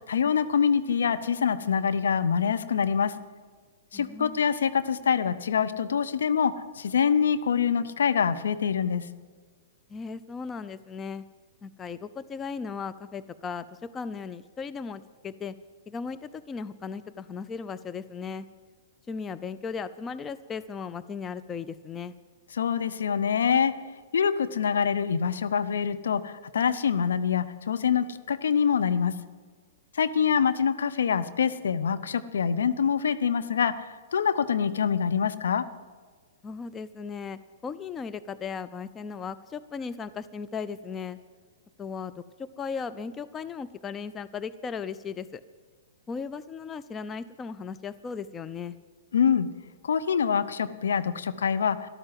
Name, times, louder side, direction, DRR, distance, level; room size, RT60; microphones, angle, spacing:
voice 1, 0.0-3.1 3.9-9.1 22.5-23.8 24.1-29.2 29.9-35.7 49.1-49.5 49.8-51.9, left 7 dB, 70° left, 11 dB, 0.8 m, -25 dB
voice 2, 3.9-4.4 9.9-11.2 11.6-15.5 15.9-18.5 19.1-22.1 36.4-41.2 41.8-45.4 46.1-48.8, left 5 dB, 20° left, 13 dB, 0.5 m, -36 dB
13.0 x 12.0 x 7.7 m, 1.5 s
figure-of-eight pair, 110°, 0 cm